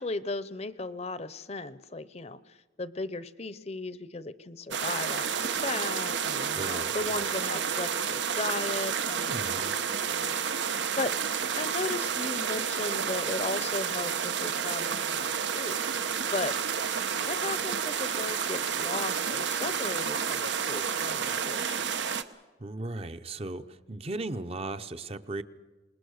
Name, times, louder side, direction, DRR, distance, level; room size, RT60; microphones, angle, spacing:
voice 1, 0.0-9.7 10.0-10.4 11.0-11.1 11.6-16.6 17.1-21.8, left 3 dB, 35° left, 15 dB, 0.7 m, -36 dB
sound 1, 4.7-22.2, right 7 dB, 85° right, 1.0 m, -30 dB
voice 2, 6.5-6.9 9.3-9.8 10.6-10.7 22.6-25.4, right 2 dB, 35° right, 10 dB, 0.8 m, -37 dB
26.5 x 20.0 x 6.5 m, 1.2 s
head